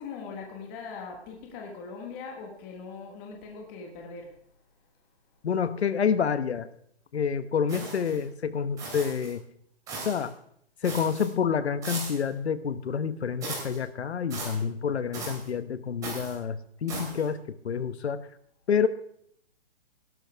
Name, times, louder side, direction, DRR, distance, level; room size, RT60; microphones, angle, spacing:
voice 1, 0.0-4.3, left 5 dB, 15° left, 1 dB, 1.4 m, -41 dB
voice 2, 5.4-6.7 7.1-9.4 10.0-10.3 10.8-18.2 18.7-18.9, left 7 dB, 75° left, 13 dB, 1.2 m, -28 dB
sound 1, 7.7-8.2 8.8-9.3 9.9-10.3 10.8-11.3 11.8-12.3 13.4-13.8 14.3-14.6 15.1-15.5 16.0-16.4 16.9-17.3, right 3 dB, 10° right, 3.1 m, -38 dB
17.5 x 12.5 x 3.5 m, 0.67 s
hypercardioid pair, 175°, 33 cm